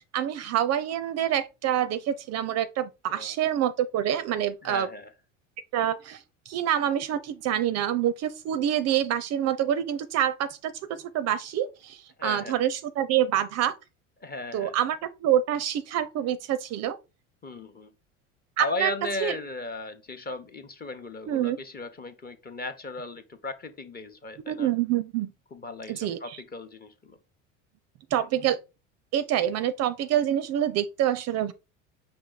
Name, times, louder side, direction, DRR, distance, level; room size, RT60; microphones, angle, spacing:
voice 1, 0.0-4.9 5.7-13.7 14.5-17.0 18.6-18.9 19.2-19.4 21.3-21.6 24.5-25.3 25.9-26.4 28.1-28.6 29.1-31.5, right 10 dB, 45° right, 0.4 m, -26 dB
voice 2, 4.6-5.1 12.2-12.6 14.2-14.8 17.4-17.9 18.6-24.7 25.5-27.2, left 2 dB, 25° left, 0.8 m, -36 dB
5.1 x 2.6 x 3.8 m
hypercardioid pair, 75°, 39 cm